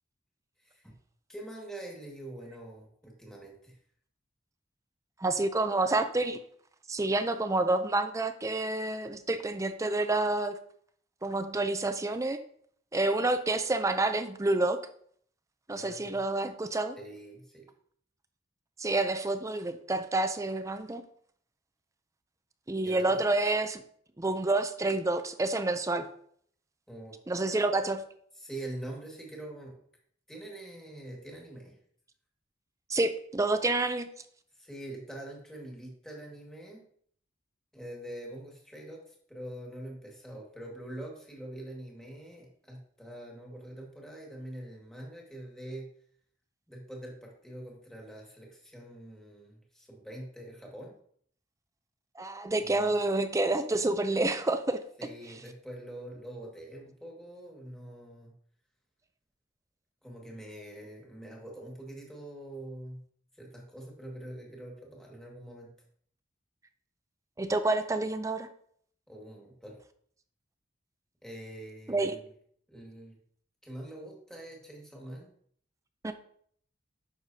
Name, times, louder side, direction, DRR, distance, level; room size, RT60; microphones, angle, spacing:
voice 1, 0.6-0.9 1.3-3.8 15.8-16.1 17.0-17.7 22.8-23.3 26.9-27.2 28.4-29.8 30.3-31.8 34.5-36.8 37.7-45.9 46.7-50.9 52.6-53.0 55.0-58.3 60.0-63.0 63.3-65.7 69.1-69.8 71.2-72.3 72.7-73.2 73.6-75.3, right 1 dB, 5° left, -2 dB, 1.9 m, -44 dB
voice 2, 5.2-6.4 6.9-10.6 11.2-12.4 12.9-14.8 15.7-17.0 18.8-21.0 22.7-23.8 24.2-26.0 27.3-28.0 32.9-34.1 52.2-54.8 67.4-68.5 71.9-72.2 76.0-76.1, right 2 dB, 15° right, 9 dB, 0.5 m, -28 dB
10.0 x 6.5 x 2.8 m, 0.62 s
head